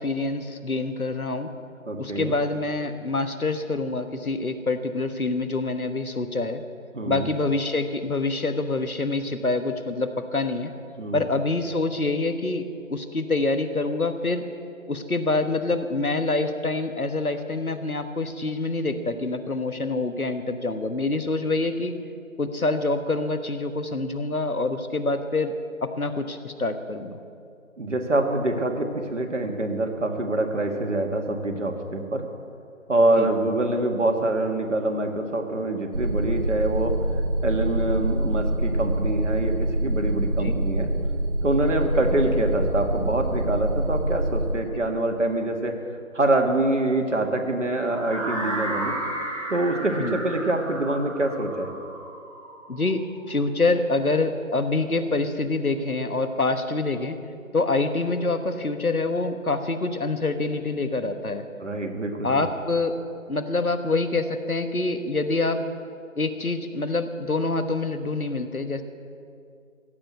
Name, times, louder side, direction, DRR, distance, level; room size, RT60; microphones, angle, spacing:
voice 1, 0.0-1.5 2.0-6.6 7.1-10.7 11.1-12.6 12.9-14.4 14.9-21.9 22.4-25.5 25.8-27.2 33.2-33.3 40.4-40.5 50.0-50.2 52.7-53.0 53.3-57.2 57.5-61.4 62.2-62.9 63.3-65.6 66.2-68.8, left 3 dB, 90° left, 9 dB, 1.3 m, -26 dB
voice 2, 1.9-2.3 6.9-7.3 11.0-11.3 27.8-32.2 32.9-37.0 37.4-40.9 41.4-45.7 46.1-48.9 49.5-51.7 61.6-62.4, right 2 dB, 60° right, 4 dB, 1.8 m, -25 dB
sound 1, 35.9-44.5, right 1 dB, 40° right, 2.5 m, -25 dB
sound 2, 47.8-53.8, right 1 dB, 25° right, 2.0 m, -33 dB
15.5 x 7.6 x 8.3 m, 2.4 s
figure-of-eight pair, 155°, 42 cm